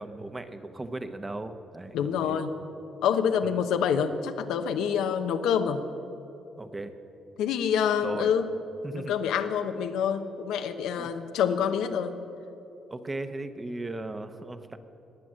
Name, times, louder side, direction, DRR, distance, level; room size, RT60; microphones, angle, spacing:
voice 1, 0.0-2.4 3.4-3.6 6.6-6.9 8.0-8.3 8.8-9.1 11.0-11.1 12.9-14.8, right 2 dB, 20° right, 9 dB, 1.0 m, -37 dB
voice 2, 1.9-2.5 3.0-5.8 7.4-8.5 9.1-12.2, left 7 dB, 90° left, 8 dB, 0.9 m, -26 dB
20.0 x 7.7 x 7.6 m, 2.9 s
cardioid pair, 90°, 0 cm